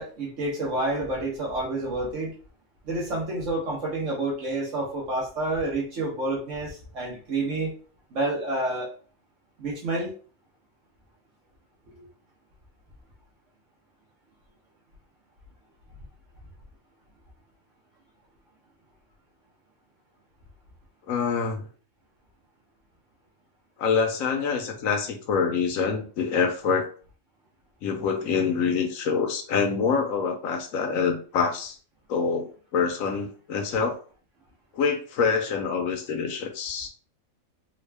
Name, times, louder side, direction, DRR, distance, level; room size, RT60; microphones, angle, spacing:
voice 1, 0.0-2.4 2.8-7.7 8.1-8.9 9.6-10.1 12.0-12.1, right 2 dB, 65° right, -3 dB, 1.4 m, -29 dB
voice 2, 21.1-21.6 23.8-26.9 27.8-31.8 32.1-34.0 34.7-36.9, left 5 dB, 85° left, 4 dB, 1.1 m, -26 dB
3.8 x 2.3 x 3.3 m, 0.39 s
omnidirectional pair, 1.4 m